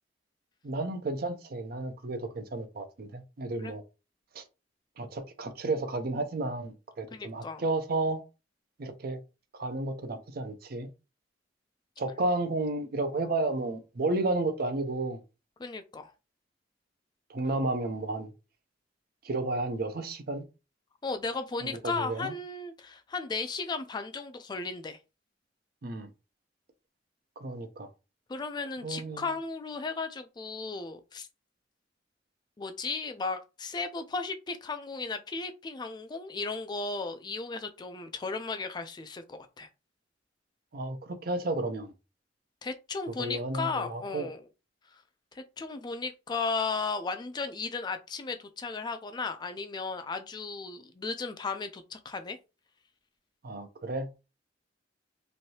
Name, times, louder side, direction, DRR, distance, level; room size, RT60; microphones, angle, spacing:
voice 1, 0.6-3.8 4.3-4.4 5.0-8.2 8.8-9.2 9.5-10.9 12.0-15.2 17.3-18.3 19.2-20.4 21.6-22.3 25.8-26.1 27.4-27.9 28.8-29.3 40.7-41.9 43.1-44.3 53.4-54.1, right 2 dB, 55° right, 0.5 m, -32 dB
voice 2, 7.1-7.6 15.6-16.1 21.0-25.0 28.3-31.3 32.6-39.7 42.6-44.4 44.9-45.0 45.3-52.4, left 4 dB, 25° left, 0.3 m, -35 dB
3.2 x 2.6 x 2.7 m
head